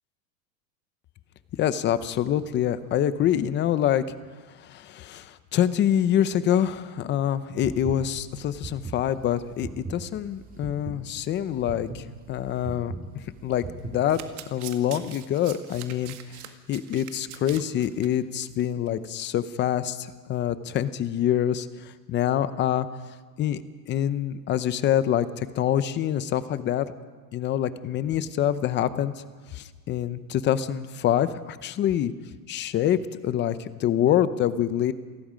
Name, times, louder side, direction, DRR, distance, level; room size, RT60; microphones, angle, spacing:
voice 1, 1.6-4.1 4.6-14.2 14.5-16.1 16.7-22.9 23.4-26.9 27.3-29.1 29.5-32.1 32.5-34.9, left 10 dB, 25° left, 14 dB, 0.7 m, -26 dB
sound 1, 7.6-14.3, right 4 dB, 15° right, 2.2 m, -39 dB
Domestic sounds home sounds, 13.9-18.1 18.4-18.6 18.9-19.0, right 13 dB, 60° right, 1.9 m, -43 dB
28.0 x 18.5 x 5.1 m, 1.4 s
supercardioid pair, 145°, 49 cm